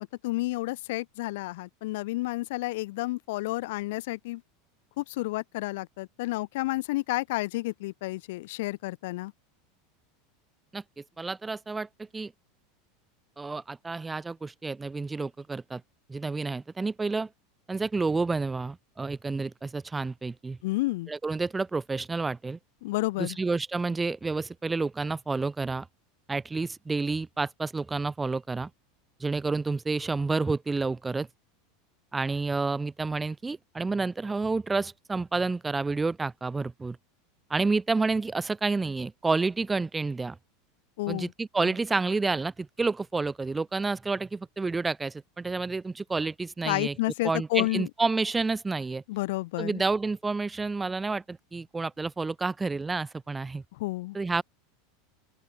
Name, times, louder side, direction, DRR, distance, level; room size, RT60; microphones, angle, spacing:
voice 1, 0.2-4.4 5.0-9.3 20.6-21.1 22.8-23.4 41.0-41.3 46.6-47.9 49.1-49.8 53.8-54.2, left 20 dB, 65° left, 0.9 m, -30 dB
voice 2, 10.7-12.3 13.4-15.8 16.1-17.3 17.7-20.6 21.1-22.6 23.2-25.9 26.3-28.7 29.2-31.3 32.1-37.0 37.5-40.4 41.1-46.9 47.2-49.0 49.6-53.6 54.1-54.4, right 3 dB, 10° right, 1.3 m, -29 dB
open air
supercardioid pair, 160°, 0 cm